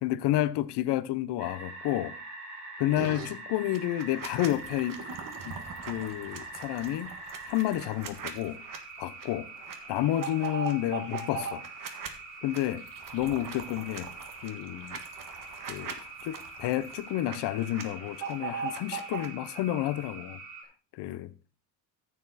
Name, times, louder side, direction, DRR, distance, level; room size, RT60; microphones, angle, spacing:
voice 1, 0.0-2.1 2.8-5.0 5.5-5.6 5.9-7.1 7.5-8.6 9.0-9.5 9.9-11.6 12.4-12.8 13.1-14.1 14.4-15.0 15.7-20.4 20.9-21.3, left 14 dB, 85° left, 0.9 m, -30 dB
sound 1, 1.4-20.6, right 3 dB, 75° right, 5.0 m, -44 dB
sound 2, 3.0-3.3 3.7-8.8 9.2-9.3 9.6-12.1 12.5-17.4 17.6-19.3, right 6 dB, 55° right, 1.7 m, -40 dB
14.0 x 7.0 x 4.2 m
cardioid pair, 120°, 40 cm